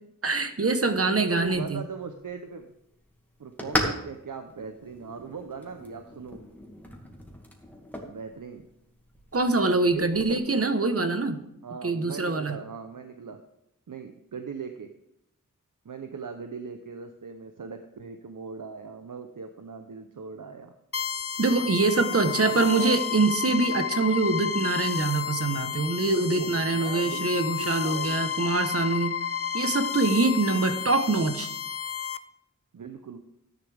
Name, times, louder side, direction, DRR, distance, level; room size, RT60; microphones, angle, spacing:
voice 1, 0.2-1.8 9.3-11.4 11.8-12.6 21.4-29.1 29.5-31.5, right 3 dB, 45° right, 8 dB, 1.2 m, -24 dB
voice 2, 1.2-2.7 3.4-6.4 8.1-8.7 9.9-10.7 11.6-13.4 13.9-14.9 15.8-20.7 22.0-23.0 26.3-28.3 32.7-33.2, right 5 dB, 70° right, 6 dB, 0.9 m, -39 dB
sound 1, 1.4-10.4, equal, 5° left, 2.2 m, -38 dB
sound 2, 20.9-32.2, left 8 dB, 45° left, 0.6 m, -32 dB
13.0 x 10.5 x 3.5 m, 0.81 s
wide cardioid pair, 65°, 33 cm